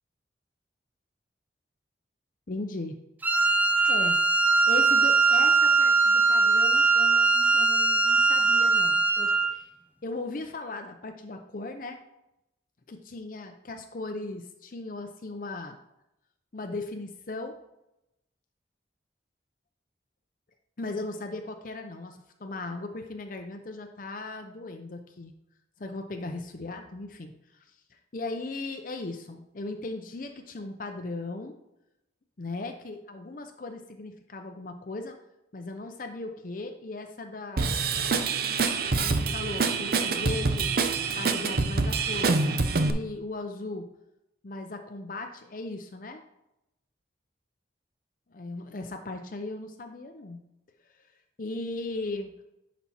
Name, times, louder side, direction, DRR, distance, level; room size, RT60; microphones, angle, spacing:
voice 1, 2.5-3.0 3.3-4.2 4.7-9.7 10.0-12.0 12.9-15.8 16.5-17.5 20.8-25.3 25.8-27.3 27.9-31.6 32.4-35.2 35.5-37.8 39.0-40.7 41.1-43.9 44.4-46.2 48.3-50.4 51.4-52.4, left 2 dB, 45° left, 5 dB, 0.6 m, -37 dB
Wind instrument woodwind instrument, 3.2-9.6, right 4 dB, 10° right, 0.5 m, -21 dB
Drum kit / Drum, 37.6-42.9, right 4 dB, 55° right, 0.6 m, -26 dB
10.5 x 4.2 x 4.2 m, 0.88 s
head